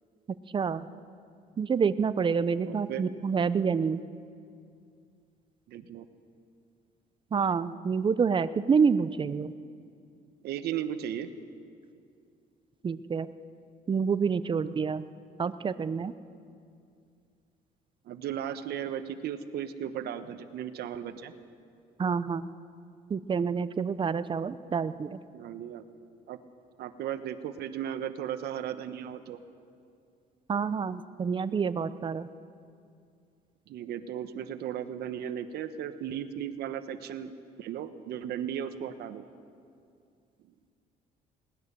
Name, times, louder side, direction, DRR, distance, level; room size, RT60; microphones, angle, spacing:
voice 1, 0.5-0.9 1.6-4.0 7.3-9.5 12.8-13.3 13.9-15.0 15.4-16.1 22.0-22.5 23.1-25.2 30.5-32.3, right 6 dB, 30° right, 14 dB, 0.7 m, -28 dB
voice 2, 2.7-3.0 5.7-6.1 10.4-11.3 18.0-21.3 25.3-25.8 26.3-26.4 26.8-29.4 33.7-39.2, right 9 dB, 70° right, 10 dB, 1.1 m, -36 dB
21.0 x 18.5 x 6.9 m, 2.4 s
cardioid pair, 110°, 17 cm